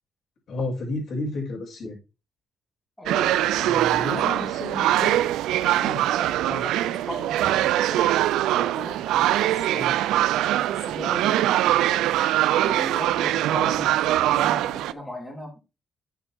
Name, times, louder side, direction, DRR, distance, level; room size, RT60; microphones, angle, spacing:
voice 1, 0.5-2.0 3.5-5.3 5.8-6.0 6.5-6.6 9.7-9.9, left 2 dB, 55° left, -2 dB, 5.9 m, -32 dB
voice 2, 3.0-4.4 6.2-8.1 8.6-10.0 10.5-12.1 12.6-15.6, equal, 10° left, -2 dB, 5.2 m, -38 dB
sound 1, 3.1-14.9, right 14 dB, 90° right, 0.4 m, -22 dB
9.0 x 7.1 x 3.6 m, 0.29 s
cardioid pair, 90°, 0 cm